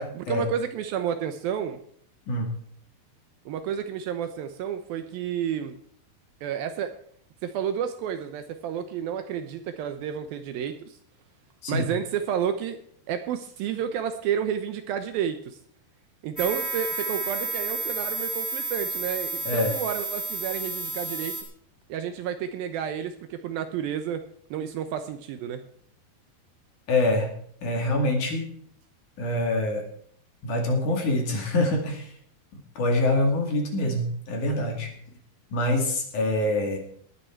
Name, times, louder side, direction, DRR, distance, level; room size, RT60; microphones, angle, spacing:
voice 1, 0.0-1.8 3.5-5.8 6.4-7.0 7.4-11.0 11.7-12.8 13.1-15.6 16.2-21.3 21.9-24.2 24.5-25.6, right 8 dB, 75° right, 9 dB, 2.4 m, -30 dB
sound 1, 16.4-21.4, right 3 dB, 5° left, 2.3 m, -31 dB
voice 2, 19.4-19.8 26.9-27.3 27.6-28.5 29.2-29.8 30.4-32.1 32.7-34.9 35.5-36.8, left 1 dB, 55° left, 2 dB, 3.5 m, -25 dB
20.0 x 8.9 x 4.5 m, 0.63 s
omnidirectional pair, 4.7 m